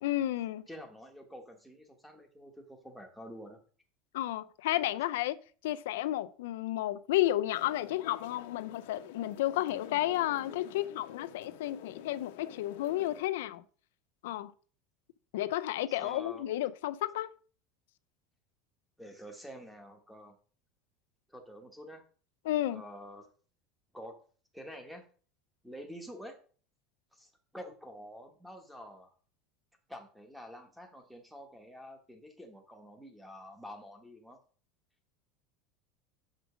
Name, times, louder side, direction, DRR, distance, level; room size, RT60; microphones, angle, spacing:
voice 1, 0.0-0.6 4.1-13.6 14.2-14.5 15.3-17.3 22.4-22.8, left 14 dB, 90° left, 0.4 m, -32 dB
voice 2, 0.7-3.6 15.9-16.5 19.0-20.4 21.3-22.0 22.7-23.3 23.9-24.2 24.5-25.0 25.6-26.4 27.1-29.1 29.9-34.4, equal, ahead, 1.1 m, -48 dB
sound 1, 7.5-13.2, left 10 dB, 75° left, 0.8 m, -49 dB
7.3 x 5.1 x 4.9 m
supercardioid pair, 170°, 0 cm